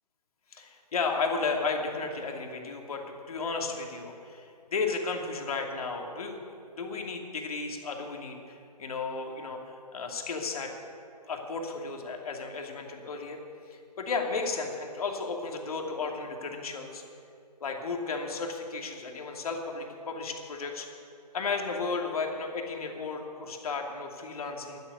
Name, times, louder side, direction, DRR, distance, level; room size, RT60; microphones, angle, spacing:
voice 1, 0.5-9.6 9.9-10.7 11.3-13.4 13.7-17.0 17.6-20.9 21.3-24.8, left 4 dB, 60° left, 2 dB, 2.6 m, -34 dB
11.5 x 11.5 x 9.7 m, 2.5 s
hypercardioid pair, 155°, 21 cm